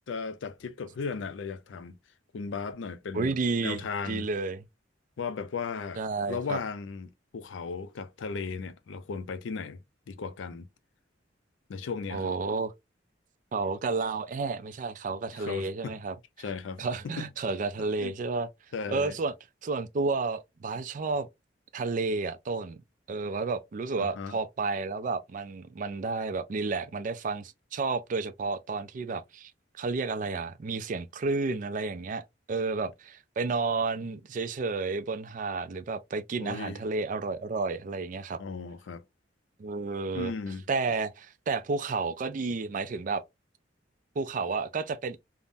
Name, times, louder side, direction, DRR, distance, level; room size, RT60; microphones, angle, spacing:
voice 1, 0.1-2.0 2.3-3.3 3.6-4.3 5.2-6.0 6.3-9.8 10.1-10.7 11.7-12.3 15.3-16.0 16.4-17.3 18.0-18.1 18.7-19.2 24.0-24.4 36.4-36.8 38.4-39.0 40.1-40.6, left 5 dB, 85° left, 0.4 m, -36 dB
voice 2, 3.1-4.6 6.0-6.6 12.1-12.7 13.5-16.2 16.8-18.5 18.9-19.3 19.6-21.3 21.7-22.8 23.1-29.5 29.8-32.2 32.5-38.4 39.6-40.3 40.7-43.2 44.2-45.2, right 4 dB, 45° right, 0.4 m, -31 dB
3.5 x 2.0 x 2.5 m
head